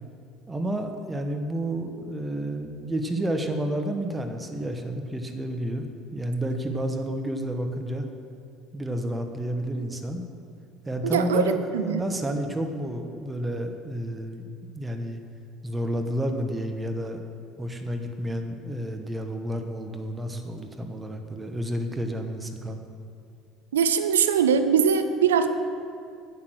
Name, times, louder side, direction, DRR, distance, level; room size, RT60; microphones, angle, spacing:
voice 1, 0.5-8.1 8.7-10.2 10.9-14.4 14.7-15.2 15.6-17.2 17.6-22.8, right 1 dB, 15° right, 5 dB, 1.2 m, -30 dB
voice 2, 11.0-11.5 11.7-12.0 23.7-25.5, right 7 dB, 90° right, 10 dB, 0.5 m, -21 dB
8.4 x 7.7 x 6.2 m, 2.3 s
hypercardioid pair, 75°, 0 cm